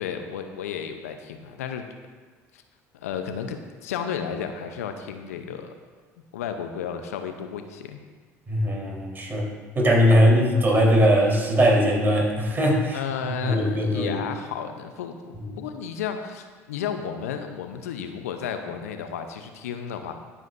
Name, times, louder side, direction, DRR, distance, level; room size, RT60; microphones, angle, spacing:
voice 1, 0.0-1.9 2.5-2.6 2.9-5.7 6.3-8.0 12.9-20.1, left 7 dB, 80° left, 6 dB, 0.7 m, -33 dB
voice 2, 8.5-9.5 9.8-13.0 13.3-14.2 15.4-15.5, equal, 25° right, -2 dB, 3.7 m, -20 dB
20.5 x 7.4 x 2.6 m, 1.5 s
hypercardioid pair, 65°, 8 cm